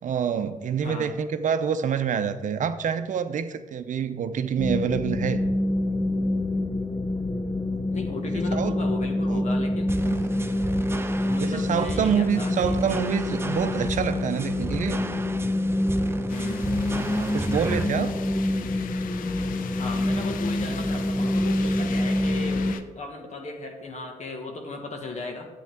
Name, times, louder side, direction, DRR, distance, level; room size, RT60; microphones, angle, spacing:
voice 1, 0.0-5.4 8.2-8.8 9.3-9.5 10.0-10.4 11.4-15.0 16.9-18.1, right 7 dB, 65° right, 0.6 m, -27 dB
voice 2, 0.8-1.1 7.9-9.9 11.2-12.8 16.3-16.7 19.7-25.5, left 2 dB, 55° left, 1.7 m, -36 dB
sound 1, 4.6-22.7, left 1 dB, 20° left, 0.7 m, -26 dB
sound 2, 9.9-17.9, right 2 dB, 15° right, 0.7 m, -35 dB
sound 3, 16.3-22.8, left 9 dB, 90° left, 0.5 m, -40 dB
10.0 x 8.5 x 3.7 m
cardioid pair, 65°, 14 cm